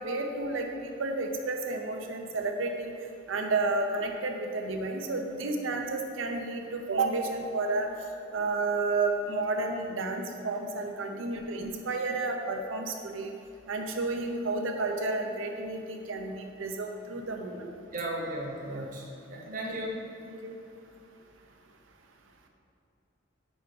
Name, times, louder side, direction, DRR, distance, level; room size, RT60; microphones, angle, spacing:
voice 1, 0.0-2.9 3.3-7.9 8.3-13.3 13.7-17.7 18.7-18.8 19.5-19.8 20.3-20.6, right 3 dB, 80° right, 4 dB, 0.6 m, -31 dB
voice 2, 17.9-20.0, right 1 dB, 40° right, -2 dB, 1.0 m, -36 dB
5.1 x 4.6 x 5.2 m, 2.6 s
head